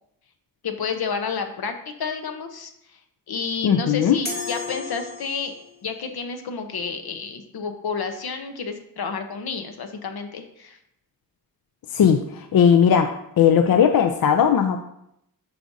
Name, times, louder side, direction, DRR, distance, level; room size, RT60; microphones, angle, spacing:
voice 1, 0.6-3.0 3.3-5.5 5.8-10.8, left 5 dB, 90° left, 6 dB, 0.9 m, -30 dB
voice 2, 3.6-4.2 11.9-14.8, left 8 dB, 70° left, 6 dB, 0.5 m, -18 dB
sound 1, 4.3-5.8, left 3 dB, 25° left, 1.0 m, -33 dB
10.5 x 5.1 x 2.7 m, 0.78 s
wide cardioid pair, 135°, 37 cm